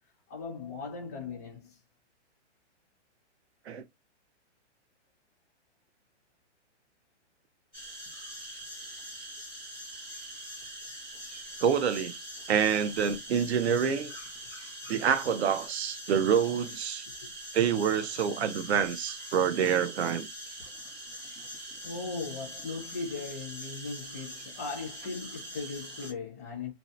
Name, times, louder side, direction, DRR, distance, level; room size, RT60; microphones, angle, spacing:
voice 1, 0.3-1.8 17.2-17.3 21.8-26.7, left 4 dB, 15° left, 0.5 m, -38 dB
sound 1, 7.7-26.1, right 1 dB, 10° right, 0.8 m, -43 dB
voice 2, 11.6-12.1 12.5-14.1 14.9-17.0 17.5-20.3, right 7 dB, 60° right, 0.6 m, -27 dB
2.7 x 2.0 x 2.5 m
hypercardioid pair, 170°, 36 cm